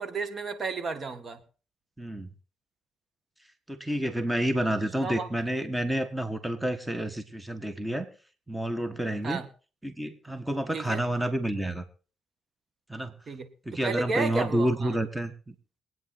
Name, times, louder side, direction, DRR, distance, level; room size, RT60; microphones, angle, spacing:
voice 1, 0.0-1.4 5.0-5.3 9.2-9.5 10.7-11.0 13.3-13.5 13.8-15.0, right 4 dB, 45° right, 9 dB, 1.7 m, -32 dB
voice 2, 2.0-2.3 3.7-8.1 8.5-9.4 9.8-11.8 12.9-13.1 13.6-15.5, right 1 dB, 5° right, 9 dB, 1.5 m, -29 dB
23.0 x 9.2 x 4.2 m, 0.37 s
cardioid pair, 90°, 0 cm